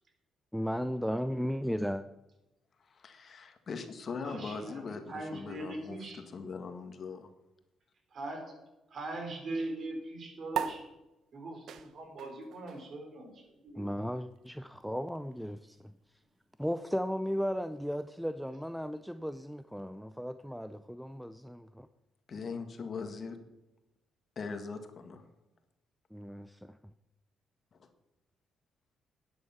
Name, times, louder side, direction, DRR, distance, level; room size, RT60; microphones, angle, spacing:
voice 1, 0.5-2.0 13.8-15.8 16.6-21.9 26.1-26.8, equal, ahead, 0.5 m, -35 dB
voice 2, 2.8-7.3 22.3-23.4 24.3-25.2 27.8-27.9, left 4 dB, 50° left, 1.6 m, -41 dB
voice 3, 4.2-6.2 8.1-8.5 8.9-10.8 11.3-13.9, right 2 dB, 50° right, 4.2 m, -41 dB
sound 1, 10.5-17.3, right 8 dB, 75° right, 0.9 m, -43 dB
11.0 x 9.7 x 5.9 m
cardioid pair, 90°, 0 cm